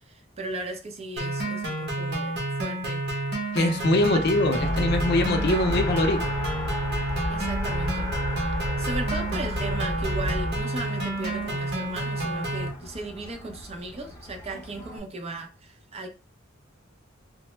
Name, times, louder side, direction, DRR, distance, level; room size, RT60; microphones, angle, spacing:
voice 1, 0.1-3.0 4.1-4.2 5.5-5.6 7.3-8.1 8.8-16.1, right 2 dB, 30° right, 0.5 m, -36 dB
sound 1, 1.2-12.7, right 2 dB, 55° right, 0.9 m, -30 dB
voice 2, 3.5-6.2, left 1 dB, 55° left, 0.5 m, -23 dB
Race car auto racing, 3.6-15.0, left 1 dB, 15° left, 0.7 m, -38 dB
sound 2, 4.6-10.6, left 1 dB, 85° right, 0.8 m, -31 dB
3.2 x 2.0 x 3.1 m
head